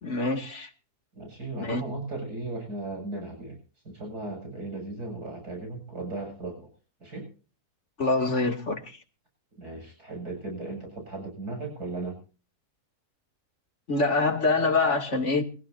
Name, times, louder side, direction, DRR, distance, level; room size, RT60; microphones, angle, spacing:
voice 1, 0.0-0.7 1.6-1.8 8.0-9.0 13.9-15.4, left 3 dB, 50° left, 4 dB, 3.0 m, -25 dB
voice 2, 1.1-3.6 3.8-6.7 7.0-7.3 9.6-12.2, right 2 dB, 90° right, 3 dB, 8.4 m, -36 dB
25.0 x 16.5 x 2.7 m, 0.36 s
omnidirectional pair, 1.6 m